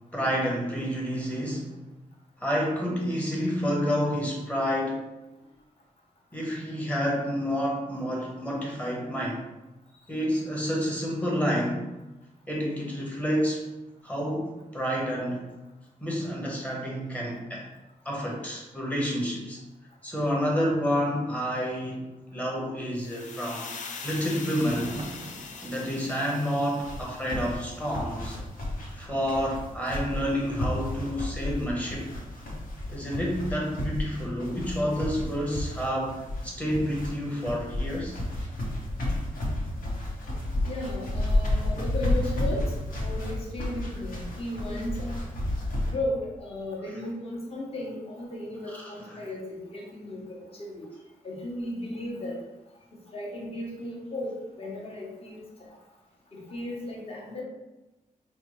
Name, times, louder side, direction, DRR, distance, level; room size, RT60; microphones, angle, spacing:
voice 1, 0.1-1.7 2.4-5.0 6.3-9.4 10.1-11.9 12.5-13.6 14.0-15.5 16.0-17.7 18.0-19.6 20.0-22.0 22.3-23.7 24.0-24.9 25.6-28.4 28.9-32.1 32.9-38.2 48.7-49.2, equal, 10° left, -3 dB, 0.8 m, -29 dB
sound 1, 23.0-28.0, left 5 dB, 65° left, 0.4 m, -42 dB
Thunder, 24.5-28.4 28.7-28.8, right 2 dB, 40° right, 0.5 m, -44 dB
sound 2, 26.8-45.9, left 1 dB, 90° left, 1.1 m, -32 dB
voice 2, 40.6-42.7 43.0-45.1 45.9-50.9 51.2-52.4 53.1-55.8 56.3-57.4, left 1 dB, 45° left, -3 dB, 1.0 m, -35 dB
5.1 x 2.2 x 3.0 m, 1.0 s
wide cardioid pair, 175°, 14 cm